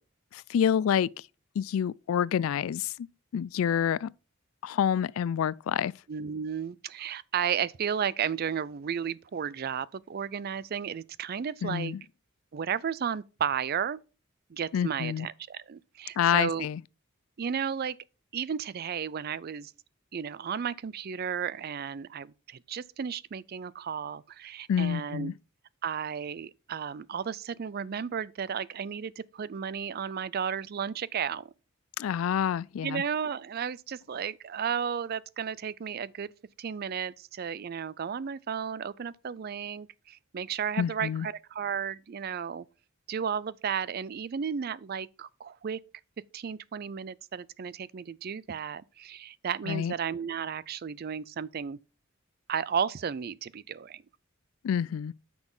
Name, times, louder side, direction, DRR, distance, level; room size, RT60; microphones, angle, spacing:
voice 1, 0.3-1.1 1.6-3.1 3.3-4.1 4.6-5.9 11.6-12.0 14.7-15.3 16.2-16.8 24.7-25.3 32.0-33.0 40.8-41.3 49.7-49.9 54.6-55.1, left 8 dB, 75° left, 0.3 m, -27 dB
voice 2, 6.1-11.9 12.5-14.0 14.5-16.7 17.4-18.0 18.3-19.7 20.1-25.3 25.8-31.5 32.8-36.3 36.6-42.7 43.1-45.8 46.3-51.8 52.5-54.0, right 7 dB, 45° right, 0.4 m, -33 dB
9.7 x 6.1 x 3.9 m
head